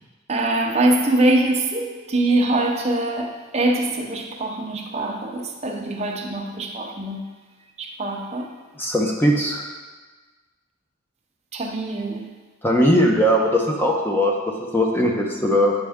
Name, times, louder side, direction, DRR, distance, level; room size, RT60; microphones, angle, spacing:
voice 1, 0.3-7.3 7.8-8.5 11.5-12.3, right 2 dB, 30° right, 1 dB, 0.7 m, -23 dB
voice 2, 8.8-9.7 12.6-14.3 14.7-15.7, equal, 10° left, 0 dB, 0.6 m, -19 dB
8.9 x 4.3 x 3.6 m, 1.3 s
head